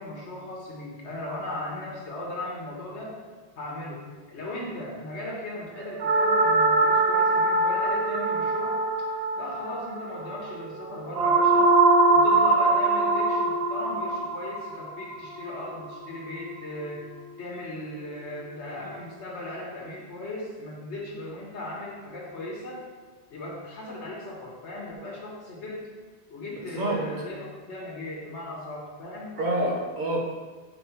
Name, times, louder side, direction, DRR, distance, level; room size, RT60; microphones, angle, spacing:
voice 1, 0.0-3.2 3.6-8.8 9.3-11.7 12.1-17.0 17.4-22.8 23.3-25.9 26.3-29.4, left 1 dB, 85° left, -3 dB, 1.5 m, -37 dB
sound 1, 6.0-16.2, right 2 dB, 65° right, 0.8 m, -23 dB
voice 2, 26.5-27.0 29.4-30.2, right 1 dB, 45° right, -2 dB, 1.2 m, -27 dB
4.5 x 4.3 x 5.7 m, 1.4 s
omnidirectional pair, 1.1 m